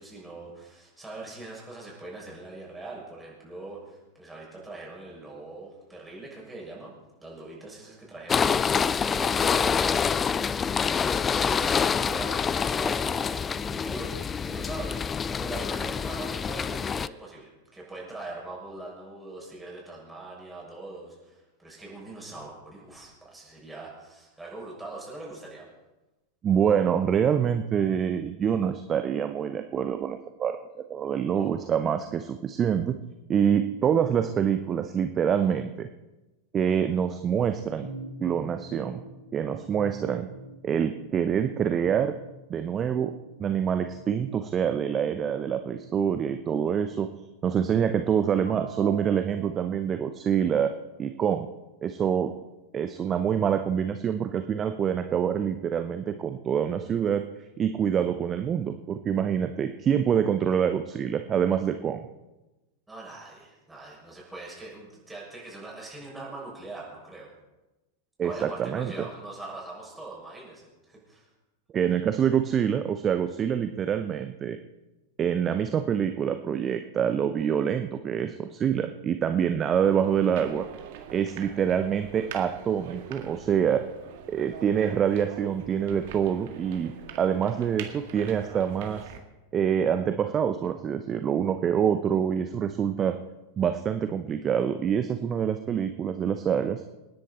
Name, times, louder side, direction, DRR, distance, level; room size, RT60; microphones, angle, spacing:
voice 1, 0.0-6.9 7.2-25.7 31.3-31.5 62.9-67.3 68.2-71.3, right 2 dB, 5° right, -4 dB, 6.7 m, -42 dB
sound 1, 8.3-17.1, left 6 dB, 20° left, 0.4 m, -26 dB
voice 2, 26.4-32.9 33.3-35.9 36.5-37.9 38.2-39.0 39.3-40.3 40.6-42.1 42.5-43.1 43.4-47.1 47.4-50.7 51.0-51.5 51.8-52.3 52.7-57.2 57.6-62.1 68.2-69.1 71.7-74.6 75.2-80.6 81.1-83.8 84.3-89.0 89.5-93.2 93.6-96.8, right 8 dB, 25° right, 8 dB, 0.8 m, -26 dB
sound 2, 37.8-47.0 47.8-49.7, right 2 dB, 85° left, 2.1 m, -46 dB
sound 3, 79.8-89.2, right 8 dB, 50° right, 1.8 m, -44 dB
27.5 x 10.0 x 4.3 m, 1.1 s
figure-of-eight pair, 90°, 0 cm